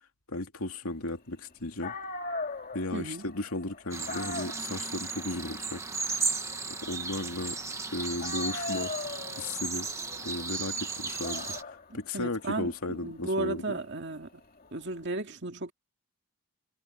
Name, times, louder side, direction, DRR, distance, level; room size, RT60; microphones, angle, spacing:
voice 1, 0.3-2.0 2.7-5.8 6.8-7.6 7.9-8.9 9.4-9.9 10.2-13.8, left 2 dB, 75° left, 2.7 m, -35 dB
Dog, 1.5-1.6 1.8-7.8 8.2-15.0, left 3 dB, 40° left, 2.5 m, -41 dB
voice 2, 2.9-3.2 11.9-14.3 14.7-15.7, right 2 dB, 55° right, 2.2 m, -34 dB
sound 1, 3.9-11.6, right 4 dB, 15° right, 1.5 m, -35 dB
head